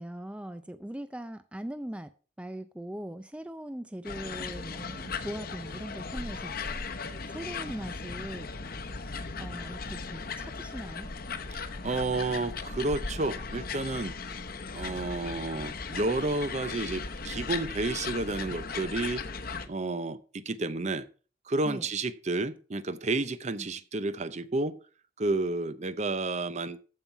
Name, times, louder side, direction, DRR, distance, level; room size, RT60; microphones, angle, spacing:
voice 1, 0.0-2.1 2.4-6.6 7.3-8.5 9.4-11.1 21.6-21.9 23.6-23.7, right 1 dB, 5° right, 0.4 m, -40 dB
sound 1, 4.0-19.7, left 4 dB, 55° left, 1.0 m, -37 dB
voice 2, 11.8-14.1 14.7-19.2 19.7-21.0 21.5-24.8 25.2-26.8, right 2 dB, 40° right, 0.7 m, -31 dB
14.5 x 5.5 x 4.5 m
head